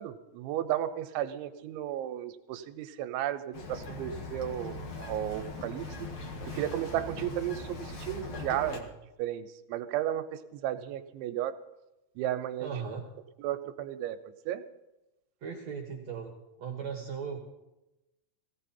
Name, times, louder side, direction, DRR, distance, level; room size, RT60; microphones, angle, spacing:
voice 1, 0.0-5.9 6.5-8.9 9.2-11.6 12.2-12.7 13.4-14.2 14.5-14.6, right 12 dB, 90° right, 10 dB, 3.3 m, -34 dB
Bird vocalization bird call bird song, 3.5-8.8, left 2 dB, 50° left, 1.6 m, -40 dB
voice 2, 12.6-13.0 15.4-16.3 16.6-17.4, right 6 dB, 60° right, 2 dB, 1.8 m, -37 dB
17.0 x 17.0 x 4.4 m, 0.95 s
omnidirectional pair, 5.2 m